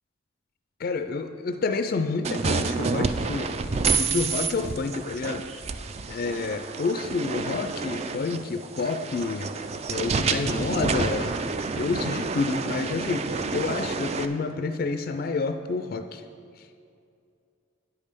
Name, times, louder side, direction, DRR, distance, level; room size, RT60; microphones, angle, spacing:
voice 1, 0.8-3.5 3.8-5.6 6.1-9.5 9.9-11.3 11.7-16.2, left 4 dB, 50° left, 8 dB, 0.3 m, -29 dB
sound 1, 2.2-14.3, right 4 dB, 35° right, 0.3 m, -29 dB
9.4 x 5.4 x 6.6 m, 2.5 s
head